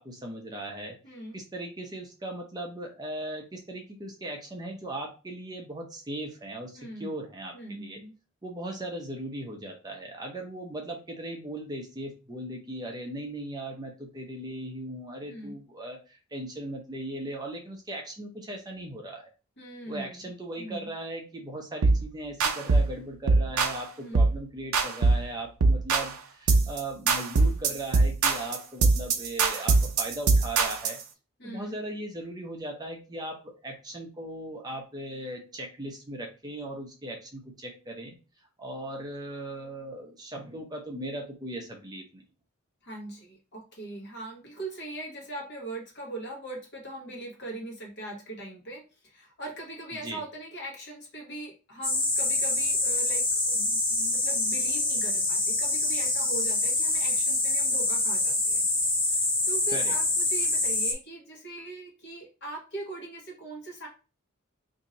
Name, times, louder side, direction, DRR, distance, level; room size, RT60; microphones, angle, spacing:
voice 1, 0.0-1.0 1.3-8.0 8.4-19.3 19.9-31.0 31.4-38.2 38.6-42.2 50.0-50.2 59.7-59.9, right 1 dB, 20° right, 1 dB, 0.6 m, -38 dB
voice 2, 1.0-1.4 6.8-7.1 7.5-8.1 15.3-15.6 19.6-20.3 20.6-20.9 24.0-24.2 31.4-31.7 42.8-58.6 59.0-63.9, right 2 dB, 55° left, -1 dB, 1.3 m, -41 dB
sound 1, 21.8-22.0 22.4-22.9 23.3-23.8 24.1-24.4 24.7-25.3 25.6-26.1 26.5-26.8 27.1-31.0, right 3 dB, 85° right, 0.5 m, -22 dB
sound 2, 51.8-60.9, left 2 dB, 25° left, 0.7 m, -26 dB
2.8 x 2.6 x 3.9 m, 0.32 s
head